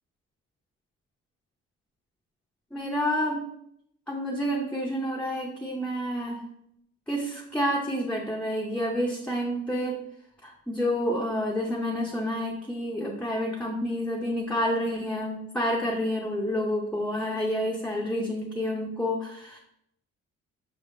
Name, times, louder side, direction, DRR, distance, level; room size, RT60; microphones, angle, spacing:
voice 1, 2.7-3.4 4.1-6.4 7.1-10.0 10.4-19.6, equal, 5° left, -3 dB, 0.7 m, -29 dB
5.6 x 3.4 x 2.7 m, 0.75 s
cardioid pair, 90°, 30 cm